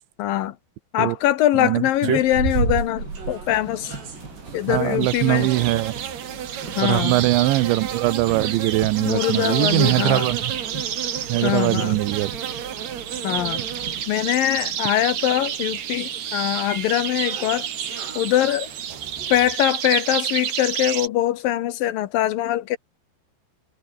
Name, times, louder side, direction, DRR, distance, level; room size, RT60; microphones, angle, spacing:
voice 1, 0.2-0.6 0.9-4.0 4.5-5.5 6.8-7.2 9.0-10.3 11.4-12.0 13.2-13.6 14.1-17.7 18.2-18.7 19.3-22.8, left 13 dB, 70° left, 2.3 m, -22 dB
sound 1, 1.9-19.6, right 5 dB, 70° right, 8.7 m, -35 dB
sound 2, 3.0-14.0, right 3 dB, 25° right, 5.4 m, -40 dB
voice 2, 4.7-6.0 6.8-10.5 11.3-12.3, right 18 dB, 90° right, 3.3 m, -21 dB
sound 3, 5.0-21.1, right 9 dB, 50° right, 2.4 m, -29 dB
omnidirectional pair, 5.1 m